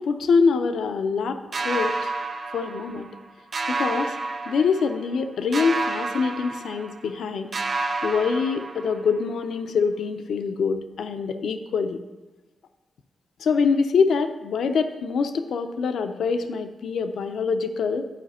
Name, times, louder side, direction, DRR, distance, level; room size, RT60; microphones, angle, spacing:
voice 1, 0.0-2.1 2.5-3.1 3.7-4.2 4.5-7.5 8.0-12.0 13.4-18.1, left 5 dB, 85° left, 8 dB, 0.5 m, -24 dB
sound 1, 1.5-3.2 3.5-5.2 5.5-7.2 7.5-9.2, right 3 dB, 35° right, 0.4 m, -30 dB
11.0 x 4.9 x 4.2 m, 1.1 s
wide cardioid pair, 135°, 0 cm